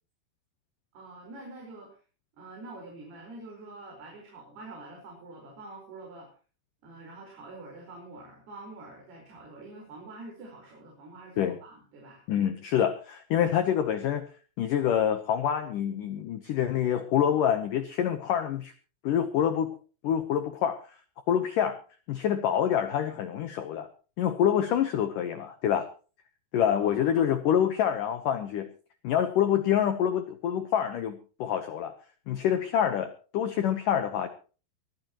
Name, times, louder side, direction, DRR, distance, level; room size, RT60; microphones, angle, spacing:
voice 1, 0.9-1.9 2.4-6.3 6.8-12.6 26.8-27.4, right 2 dB, 55° right, -1 dB, 6.7 m, -46 dB
voice 2, 12.3-14.3 14.6-18.7 19.0-19.7 20.0-20.8 21.3-21.8 22.1-23.9 24.2-25.9 26.5-28.7 29.0-31.9 32.3-34.3, left 9 dB, 75° left, 9 dB, 1.9 m, -26 dB
23.0 x 14.5 x 3.1 m, 0.37 s
omnidirectional pair, 5.4 m